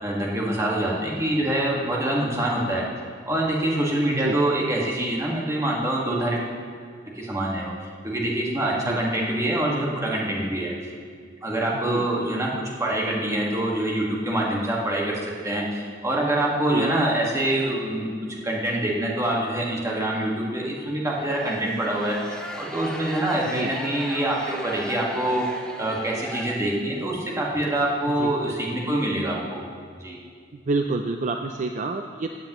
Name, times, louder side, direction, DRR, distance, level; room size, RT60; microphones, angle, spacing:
voice 1, 0.0-2.8 3.3-6.4 7.1-7.7 8.0-10.7 11.4-29.6 30.0-30.2, right 1 dB, 15° right, -3 dB, 1.7 m, -25 dB
sound 1, 21.2-27.1, left 1 dB, 5° left, 0.7 m, -37 dB
voice 2, 30.7-32.3, right 3 dB, 40° right, 5 dB, 0.4 m, -27 dB
15.5 x 8.7 x 3.1 m, 2.1 s
head